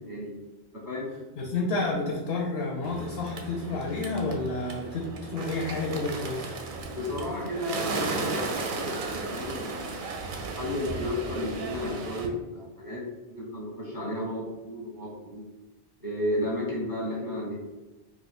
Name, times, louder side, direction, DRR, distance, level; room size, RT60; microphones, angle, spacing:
voice 1, 0.7-1.1 6.9-10.2 10.6-13.0 13.3-15.5 16.0-17.5, left 1 dB, 25° right, -5 dB, 0.6 m, -33 dB
voice 2, 1.4-6.5, left 3 dB, 75° left, -1 dB, 0.8 m, -30 dB
Bird, 2.8-12.3, right 3 dB, 60° right, 0.6 m, -35 dB
2.4 x 2.4 x 4.1 m, 1.1 s
omnidirectional pair, 1.1 m